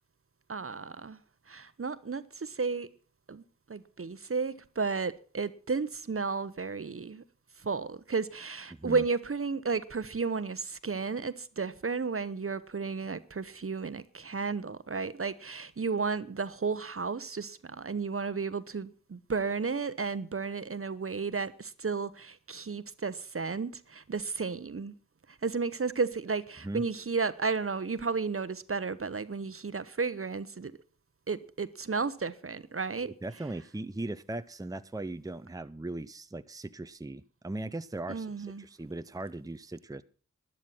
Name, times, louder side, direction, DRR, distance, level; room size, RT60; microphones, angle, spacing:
voice 1, 0.5-1.2 1.5-2.9 3.3-7.2 7.6-24.9 25.3-30.8 31.3-33.1 38.1-38.7, right 4 dB, 45° right, 1.0 m, -33 dB
voice 2, 8.7-9.0 26.6-26.8 33.0-40.0, right 2 dB, 10° right, 0.7 m, -39 dB
12.0 x 11.0 x 5.7 m
cardioid pair, 40°, 31 cm